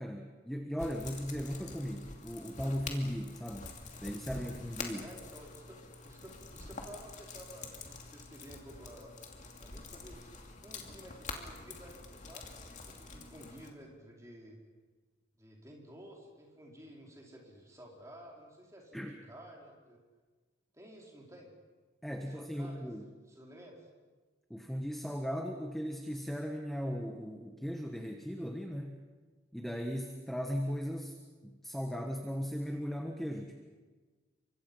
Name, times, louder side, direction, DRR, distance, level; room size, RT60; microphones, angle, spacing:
voice 1, 0.0-3.7 4.0-5.1 18.9-19.2 22.0-23.1 24.5-29.0 29.5-31.2 31.4-33.6, equal, ahead, 3 dB, 1.3 m, -37 dB
sound 1, 0.8-13.7, left 3 dB, 40° left, 2.7 m, -46 dB
voice 2, 5.0-9.1 9.6-10.2 10.6-14.6 15.4-20.0 20.7-21.5 22.2-22.9 23.3-23.9, equal, 15° right, -2 dB, 4.8 m, -53 dB
29.5 x 25.0 x 5.6 m, 1.4 s
head